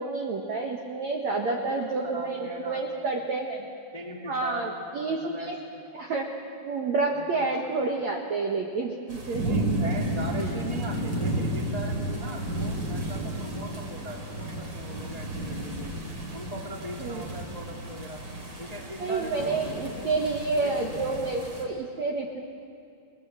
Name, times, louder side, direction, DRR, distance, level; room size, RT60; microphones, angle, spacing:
voice 1, 0.0-3.7 4.3-5.6 5.9-6.3 6.6-9.8 10.4-10.5 17.0-17.2 19.0-22.4, right 3 dB, 65° right, 1 dB, 1.8 m, -29 dB
voice 2, 1.5-3.2 3.9-5.7 7.1-7.4 9.4-16.0 16.3-18.2 18.6-20.1 20.5-21.0, equal, 10° left, -1 dB, 1.4 m, -39 dB
sound 1, 9.1-21.6, right 1 dB, 30° right, 3.1 m, -32 dB
30.0 x 19.5 x 7.5 m, 2.5 s
omnidirectional pair, 5.4 m